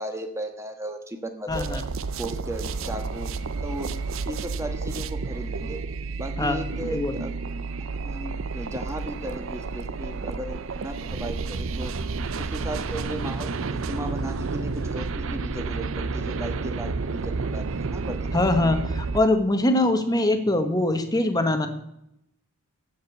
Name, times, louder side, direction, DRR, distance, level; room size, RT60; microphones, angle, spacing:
voice 1, 0.0-1.8 2.2-3.9 4.2-5.8 6.2-7.3 8.0-11.9 12.3-18.2, right 1 dB, 15° right, 6 dB, 1.4 m, -36 dB
voice 2, 1.5-1.8 6.4-6.6 6.9-7.1 18.3-21.7, left 2 dB, 15° left, 8 dB, 1.2 m, -22 dB
sound 1, 1.5-19.2, right 4 dB, 65° right, 0.6 m, -31 dB
15.0 x 5.3 x 8.1 m, 0.80 s
head